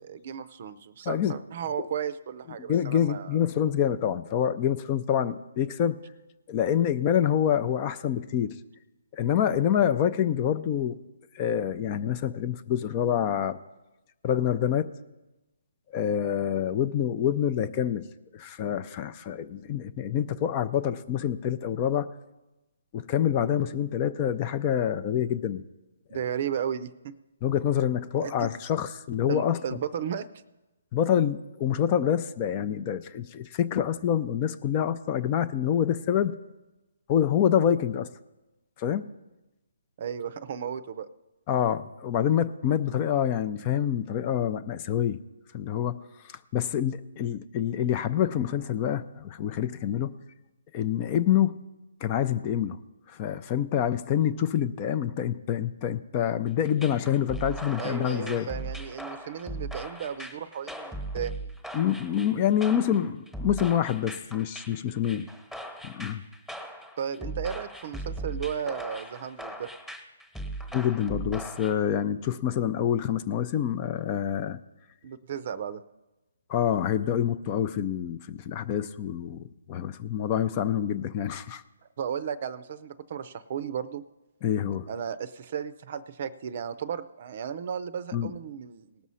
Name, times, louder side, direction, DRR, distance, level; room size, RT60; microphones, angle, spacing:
voice 1, 0.1-3.4 26.1-27.1 28.2-28.5 29.3-30.3 40.0-41.1 57.8-61.5 67.0-69.7 75.0-75.8 82.0-84.0 84.9-89.0, right 8 dB, 45° right, 15 dB, 0.6 m, -34 dB
voice 2, 2.7-6.0 6.5-8.5 9.1-11.0 11.3-13.6 14.2-14.9 15.9-18.0 18.3-22.1 22.9-25.6 27.4-29.6 30.9-36.4 37.1-38.1 38.8-39.1 41.5-45.2 45.5-50.2 50.7-51.6 52.0-52.8 53.1-58.5 61.7-65.3 65.8-66.2 70.7-74.6 76.5-81.6 84.4-84.9 88.1-88.3, left 9 dB, 30° left, 12 dB, 0.5 m, -26 dB
sound 1, 56.6-71.7, right 1 dB, 5° left, 1.2 m, -39 dB
18.5 x 6.2 x 5.6 m, 1.0 s
hypercardioid pair, 155°, 0 cm